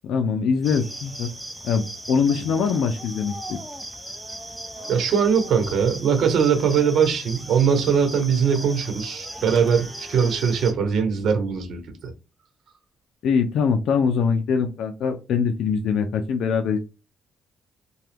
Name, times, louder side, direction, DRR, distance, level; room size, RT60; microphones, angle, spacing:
voice 1, 0.0-1.3 1.6-3.6 13.2-16.8, left 6 dB, 75° left, 0.4 m, -23 dB
sound 1, 0.6-10.7, right 1 dB, 5° right, 0.7 m, -37 dB
voice 2, 4.9-11.8, right 7 dB, 65° right, 0.9 m, -21 dB
2.8 x 2.2 x 3.4 m
cardioid pair, 90°, 0 cm